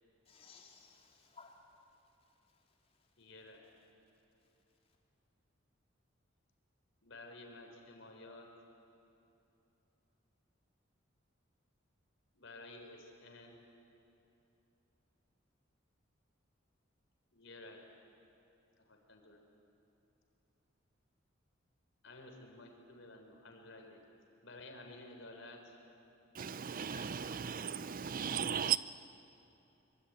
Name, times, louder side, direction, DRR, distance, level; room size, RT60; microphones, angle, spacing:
voice 1, 0.3-1.6 26.9-27.7, left 4 dB, 30° left, 3.9 m, -58 dB
voice 2, 3.2-3.7 7.0-8.5 12.3-13.6 17.3-17.8 18.8-19.4 22.0-24.0 24.4-25.7 28.5-28.8, left 2 dB, 70° left, 4.2 m, -53 dB
voice 3, 26.4-28.8, right 8 dB, 45° right, 0.5 m, -36 dB
24.5 x 24.0 x 9.2 m
head